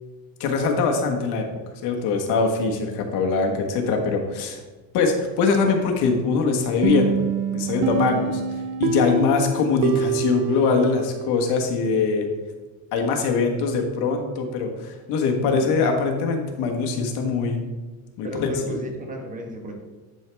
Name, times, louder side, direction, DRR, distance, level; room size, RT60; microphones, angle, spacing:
voice 1, 0.4-1.5 1.8-4.6 4.9-7.2 7.5-12.3 12.9-17.6 18.2-18.5, left 4 dB, 75° left, 3 dB, 1.4 m, -22 dB
sound 1, 6.8-11.5, right 6 dB, 80° right, 0.8 m, -26 dB
voice 2, 15.4-15.8 18.2-19.7, right 1 dB, 20° right, 2 dB, 1.3 m, -34 dB
10.5 x 4.7 x 3.4 m, 1.3 s
cardioid pair, 150°, 40 cm